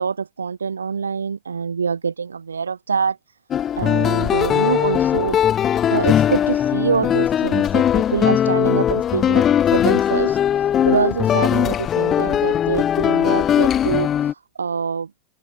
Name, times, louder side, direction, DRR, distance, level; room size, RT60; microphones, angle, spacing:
voice 1, 0.0-3.2 3.8-5.4 5.9-9.5 9.7-15.3, right 5 dB, 75° right, 4.2 m, -25 dB
sound 1, 3.5-14.3, left 10 dB, 25° left, 2.2 m, -19 dB
open air
figure-of-eight pair, 90°, 0 cm